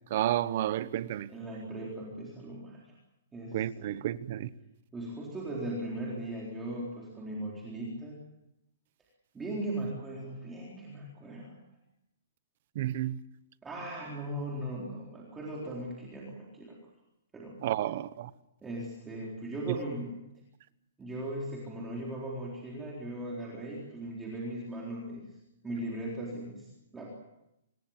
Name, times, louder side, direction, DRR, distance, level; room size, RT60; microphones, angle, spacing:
voice 1, 0.1-1.3 3.5-4.5 12.7-13.2 17.6-18.3 19.7-19.8, right 12 dB, 40° right, 1.0 m, -31 dB
voice 2, 1.3-2.9 3.3-3.9 4.9-8.2 9.3-11.6 13.6-16.8 17.3-17.6 18.6-20.2 21.0-25.4 25.6-27.1, right 1 dB, 10° right, 3.9 m, -38 dB
26.0 x 21.0 x 7.3 m
hypercardioid pair, 170°, 0 cm